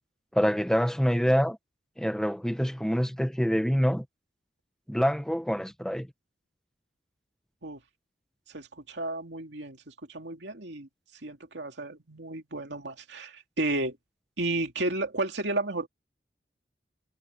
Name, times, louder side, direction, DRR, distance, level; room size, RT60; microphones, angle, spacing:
voice 1, 0.3-1.6 2.0-4.0 4.9-6.1, equal, 5° left, 1.1 m, -26 dB
voice 2, 8.5-10.9 11.2-14.0 14.4-15.9, right 2 dB, 85° right, 2.5 m, -33 dB
head